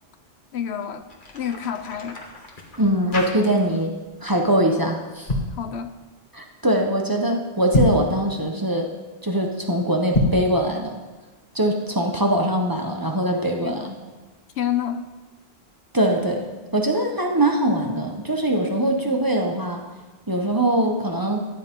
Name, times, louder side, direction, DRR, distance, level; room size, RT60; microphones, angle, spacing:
voice 1, 0.5-2.2 5.5-5.9 13.6-13.9 14.6-15.1, left 9 dB, 80° left, 9 dB, 1.0 m, -29 dB
sound 1, 1.0-3.9 4.2-4.5 5.1-5.6 7.6-8.1 10.0-10.5, left 1 dB, 50° left, 1.8 m, -26 dB
voice 2, 2.8-3.9 4.2-5.3 6.3-8.9 9.2-11.0 11.5-14.0 15.9-16.5 16.7-19.8 20.3-21.5, right 1 dB, 20° right, 2 dB, 1.2 m, -22 dB
14.0 x 11.0 x 3.8 m, 1.2 s
omnidirectional pair, 1.1 m